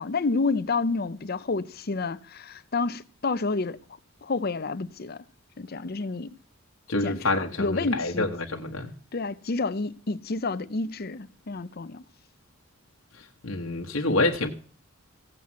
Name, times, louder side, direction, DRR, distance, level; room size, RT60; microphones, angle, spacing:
voice 1, 0.0-3.8 4.2-5.2 5.6-6.3 7.0-8.3 9.1-12.0, left 3 dB, 50° left, 0.7 m, -29 dB
voice 2, 6.9-8.9 13.4-14.5, left 2 dB, 75° left, 1.3 m, -27 dB
16.0 x 7.7 x 7.4 m
head